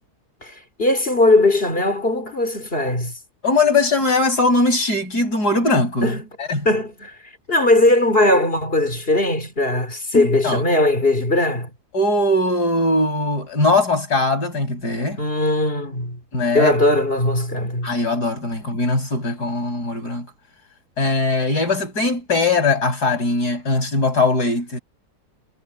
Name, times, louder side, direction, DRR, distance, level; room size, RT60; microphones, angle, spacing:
voice 1, 0.4-3.1 6.0-6.3 6.6-7.1 7.5-11.7 15.2-16.2 16.5-17.9, left 1 dB, 35° left, 3.3 m, -19 dB
voice 2, 3.4-6.1 6.4-6.6 10.1-10.6 11.9-15.2 16.3-16.8 17.8-20.3 21.0-24.8, left 2 dB, 85° left, 7.7 m, -20 dB
omnidirectional pair, 1.7 m